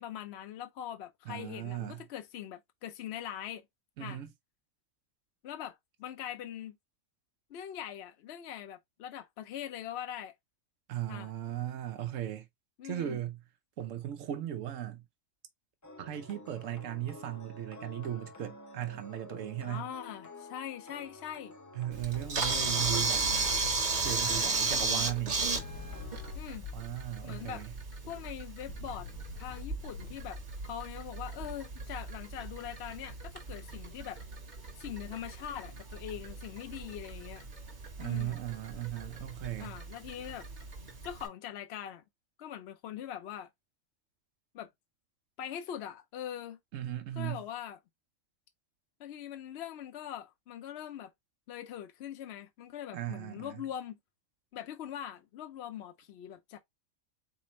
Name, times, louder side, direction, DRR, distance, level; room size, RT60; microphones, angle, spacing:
voice 1, 0.0-3.6 4.0-4.2 5.4-6.8 7.5-10.3 11.1-11.3 12.8-13.2 19.6-21.5 24.6-25.1 26.3-26.6 27.2-27.6 28.1-29.1 29.4-34.2 34.8-37.4 38.0-38.4 39.6-40.5 41.0-42.0 42.4-43.5 44.5-44.7 45.4-46.6 47.2-47.8 49.0-51.1 51.5-54.0 54.5-56.6, left 10 dB, 65° left, 0.8 m, -42 dB
voice 2, 1.3-2.0 4.0-4.3 10.9-12.5 12.8-13.4 13.8-15.0 16.0-19.9 21.7-23.6 24.0-25.4 26.7-27.7 38.0-39.8 46.7-47.4 52.9-53.6, right 12 dB, 85° right, 1.1 m, -37 dB
sound 1, 15.8-26.4, left 2 dB, 25° left, 0.4 m, -50 dB
Camera, 21.9-41.3, right 4 dB, 40° right, 1.1 m, -36 dB
sound 2, 22.4-24.7 25.4-27.7 28.7-30.9, left 5 dB, 90° left, 1.1 m, -46 dB
4.2 x 3.4 x 3.0 m
omnidirectional pair, 1.3 m